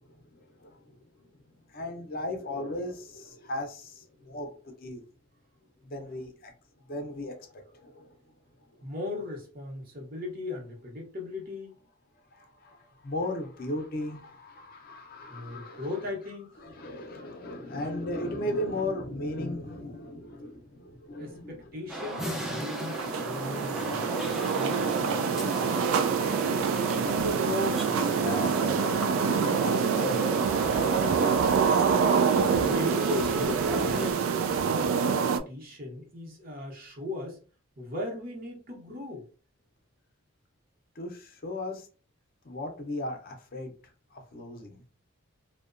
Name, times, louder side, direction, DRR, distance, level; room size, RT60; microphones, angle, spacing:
voice 1, 0.3-0.8 1.7-5.0 5.8-6.5 6.9-8.1 12.3-15.9 16.6-21.5 27.0-28.7 29.0-30.3 41.0-41.9 42.4-43.7 44.1-44.8, left 1 dB, 45° left, 0.5 m, -36 dB
voice 2, 8.8-11.8 15.3-16.6 21.2-25.1 32.2-34.2 34.7-37.4 37.8-39.2, left 2 dB, 45° right, 0.8 m, -38 dB
sound 1, 21.9-34.1, right 1 dB, 5° right, 0.4 m, -35 dB
sound 2, 22.2-35.4, right 6 dB, 75° right, 0.3 m, -26 dB
2.7 x 2.1 x 2.4 m
head